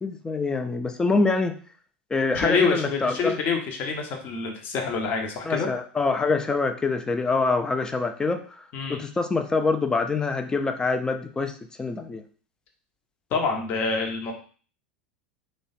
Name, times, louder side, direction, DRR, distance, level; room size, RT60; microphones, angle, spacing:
voice 1, 0.0-1.6 2.1-3.4 5.4-8.6 8.9-12.2, left 3 dB, 15° left, 7 dB, 0.4 m, -25 dB
voice 2, 2.3-5.7 8.7-9.0 13.3-14.3, left 4 dB, 40° left, 2 dB, 0.8 m, -26 dB
3.1 x 2.2 x 4.0 m, 0.41 s
figure-of-eight pair, 80°, 5 cm